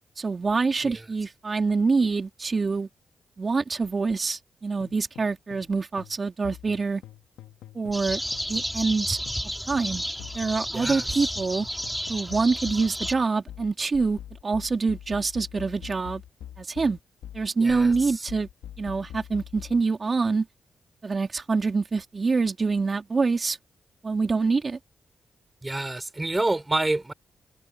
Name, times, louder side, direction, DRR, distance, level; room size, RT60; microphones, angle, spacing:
voice 1, 0.2-2.9 3.4-7.0 7.7-8.2 8.5-9.2 9.7-10.0 10.3-11.7 12.1-16.2 16.6-17.0 17.3-18.5 18.8-20.5 21.0-23.6 24.0-24.8, right 4 dB, 45° right, 3.8 m, -25 dB
sound 1, 4.8-5.7 6.0-9.5 9.7-19.8, left 11 dB, 85° left, 2.4 m, -44 dB
sound 2, 7.9-13.1, equal, ahead, 6.6 m, -32 dB
voice 2, 10.7-11.0 17.6-18.1 25.6-27.1, right 2 dB, 25° right, 5.0 m, -28 dB
supercardioid pair, 45°, 0 cm